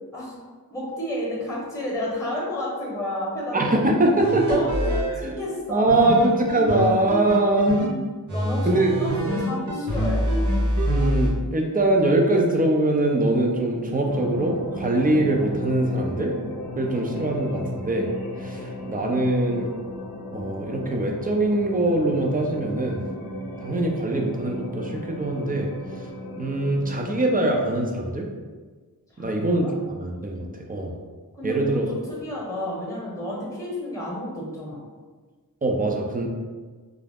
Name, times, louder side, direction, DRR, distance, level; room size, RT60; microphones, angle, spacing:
voice 1, 0.7-3.7 4.5-6.1 8.3-10.3 29.2-29.7 31.3-34.8, left 1 dB, 10° left, -4 dB, 0.9 m, -31 dB
voice 2, 3.5-4.6 5.2-5.4 5.7-7.9 8.7-8.9 10.9-16.3 16.8-18.1 18.4-19.7 20.3-23.1 23.6-25.7 26.4-28.3 29.2-31.0 31.4-31.8 35.6-36.3, right 2 dB, 25° right, 0 dB, 0.4 m, -23 dB
sound 1, 4.2-5.1 5.9-7.9 8.3-11.3, equal, 50° right, 0.9 m, -25 dB
sound 2, 14.1-27.6, left 1 dB, 65° left, 0.5 m, -35 dB
2.4 x 2.0 x 3.4 m, 1.4 s
cardioid pair, 65°, 38 cm